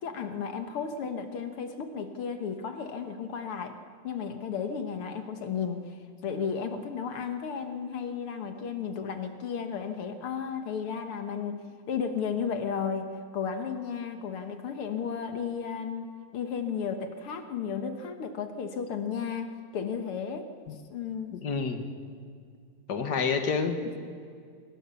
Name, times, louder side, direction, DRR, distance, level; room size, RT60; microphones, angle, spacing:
voice 1, 0.0-3.8 4.0-20.5 20.9-21.4 23.0-23.1, left 6 dB, 80° left, 6 dB, 2.3 m, -34 dB
voice 2, 21.3-21.8 22.9-24.0, left 5 dB, 50° left, 5 dB, 2.3 m, -29 dB
26.0 x 24.0 x 7.1 m, 2.2 s
omnidirectional pair, 2.4 m